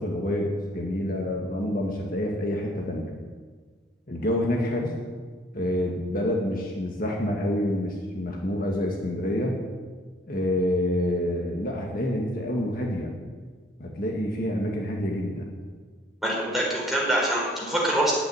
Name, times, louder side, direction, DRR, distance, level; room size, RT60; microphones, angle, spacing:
voice 1, 0.0-3.1 4.1-4.9 5.5-9.6 10.3-13.1 13.8-15.5, left 1 dB, 50° left, -1 dB, 1.9 m, -27 dB
voice 2, 16.2-18.1, right 1 dB, ahead, -4 dB, 4.4 m, -24 dB
10.5 x 9.2 x 9.7 m, 1.5 s
head